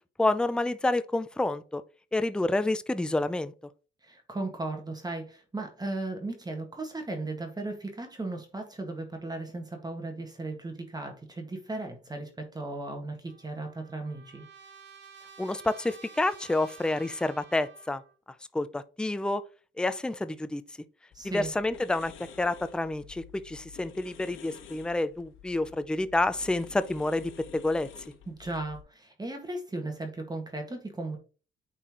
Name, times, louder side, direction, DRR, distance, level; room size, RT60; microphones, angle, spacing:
voice 1, 0.2-1.8 2.1-3.5 15.4-18.0 18.5-19.4 19.8-20.6 21.2-22.1 22.4-27.9, left 2 dB, 5° left, 0.5 m, -28 dB
voice 2, 4.0-14.5 21.1-21.5 28.3-31.2, right 2 dB, 20° right, 1.8 m, -36 dB
Trumpet, 13.3-18.2, right 6 dB, 65° right, 1.6 m, -52 dB
sound 1, 21.1-28.8, left 8 dB, 80° left, 1.2 m, -51 dB
9.0 x 4.3 x 3.0 m
cardioid pair, 90°, 20 cm